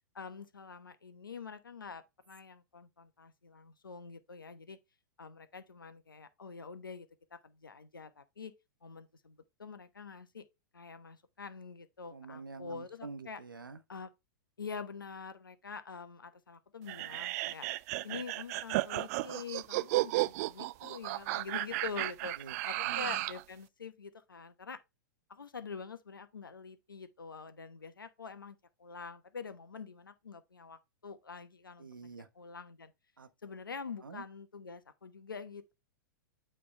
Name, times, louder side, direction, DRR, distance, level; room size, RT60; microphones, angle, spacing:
voice 1, 0.1-4.8 5.2-8.5 8.8-10.4 10.7-13.4 13.9-14.1 14.6-17.7 18.0-22.4 22.6-24.8 25.3-31.9 32.4-32.9 33.4-35.7, left 5 dB, 85° left, 1.0 m, -46 dB
voice 2, 12.1-13.8 22.4-23.0 31.8-32.3 33.2-33.3 34.0-34.2, right 4 dB, 90° right, 0.9 m, -47 dB
sound 1, 16.9-23.4, right 19 dB, 50° right, 0.3 m, -34 dB
8.6 x 3.5 x 3.2 m
hypercardioid pair, 105°, 11 cm